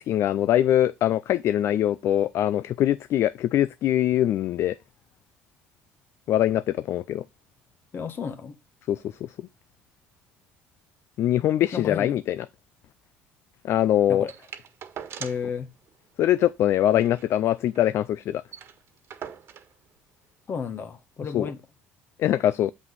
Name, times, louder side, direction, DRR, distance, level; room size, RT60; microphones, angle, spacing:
voice 1, 0.0-4.8 6.3-7.2 8.9-9.0 11.2-12.4 13.6-14.3 16.2-18.4 21.3-21.5 22.2-22.7, left 12 dB, 60° left, 0.4 m, -23 dB
voice 2, 7.9-8.5 11.7-12.2 14.1-14.3 15.2-15.7 20.5-21.6, left 6 dB, 45° left, 1.5 m, -32 dB
sound 1, 14.3-15.6 15.9-16.0 16.2-16.4 16.8-17.9 18.2-18.3 18.5-19.7 20.6-20.7, right 8 dB, 55° right, 1.4 m, -42 dB
7.6 x 5.9 x 3.9 m
supercardioid pair, 80°, 5 cm